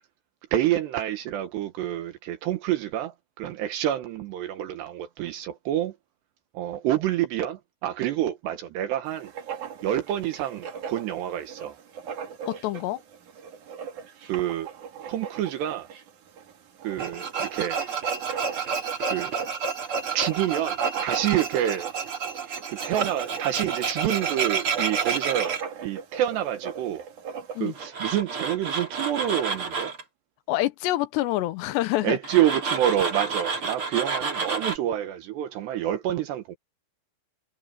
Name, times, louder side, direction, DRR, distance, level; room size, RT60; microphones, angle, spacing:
voice 1, 0.5-6.0 6.5-9.3 9.8-11.8 14.3-14.7 15.1-15.9 16.8-17.8 19.1-19.3 20.1-21.9 22.7-25.6 25.8-27.0 27.6-29.9 32.0-36.6, right 12 dB, 75° right, 3.4 m, -27 dB
Writing, 9.1-27.8, right 7 dB, 50° right, 3.3 m, -40 dB
voice 2, 12.5-13.0 27.6-27.7 30.5-32.2, left 16 dB, 80° left, 3.1 m, -26 dB
Tools, 17.0-25.6 27.7-30.0 32.2-34.8, right 5 dB, 35° right, 3.6 m, -30 dB
omnidirectional pair, 5.0 m